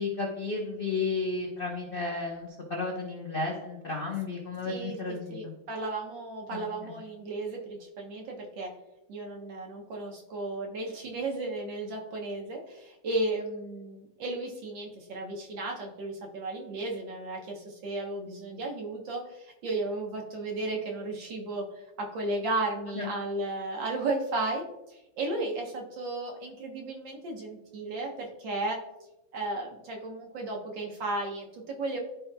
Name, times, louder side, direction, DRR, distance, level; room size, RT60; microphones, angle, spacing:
voice 1, 0.0-5.5 6.5-7.0 22.9-23.1, left 3 dB, 55° left, -1 dB, 0.6 m, -33 dB
voice 2, 4.6-5.0 5.3-8.7 9.1-28.8 29.3-32.0, right 2 dB, 65° right, 0 dB, 1.7 m, -34 dB
12.5 x 4.4 x 2.2 m, 0.95 s
omnidirectional pair, 2.3 m